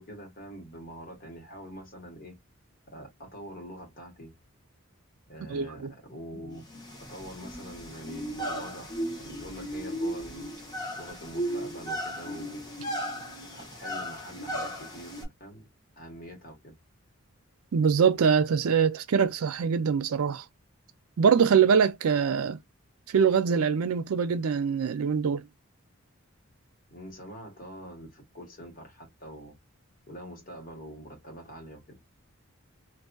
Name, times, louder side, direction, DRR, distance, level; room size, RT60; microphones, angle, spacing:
voice 1, 0.0-2.4 2.9-4.4 5.3-10.5 11.0-12.7 13.5-15.7 15.9-16.8 26.9-29.6 30.1-32.0, equal, 40° left, 1.3 m, -45 dB
voice 2, 5.5-5.9 17.7-20.4 21.2-22.6 23.1-25.5, right 6 dB, 80° right, 0.4 m, -23 dB
sound 1, 6.7-15.2, equal, 20° left, 0.9 m, -36 dB
2.6 x 2.6 x 2.2 m
head